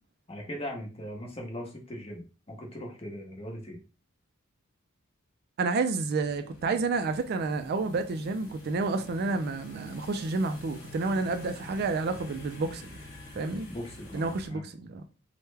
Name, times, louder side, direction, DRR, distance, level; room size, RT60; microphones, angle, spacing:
voice 1, 0.3-3.8 13.7-14.7, equal, 30° left, 0.9 m, -39 dB
voice 2, 5.6-12.9 13.4-13.7 14.1-15.0, right 3 dB, 50° right, 0.3 m, -30 dB
sound 1, 6.1-14.5, left 2 dB, 60° left, 1.3 m, -47 dB
3.2 x 2.1 x 3.2 m
head